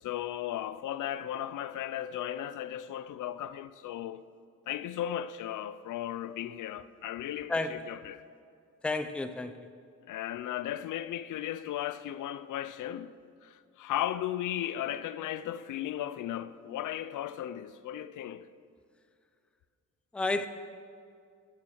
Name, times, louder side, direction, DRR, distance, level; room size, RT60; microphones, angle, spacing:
voice 1, 0.0-4.2 4.7-8.2 10.1-13.1 13.4-18.5, left 11 dB, 85° left, 0.5 m, -36 dB
voice 2, 7.5-7.9 8.8-9.7 20.1-20.5, left 2 dB, 5° left, 0.4 m, -31 dB
13.0 x 7.3 x 6.3 m
wide cardioid pair, 160°, 30 cm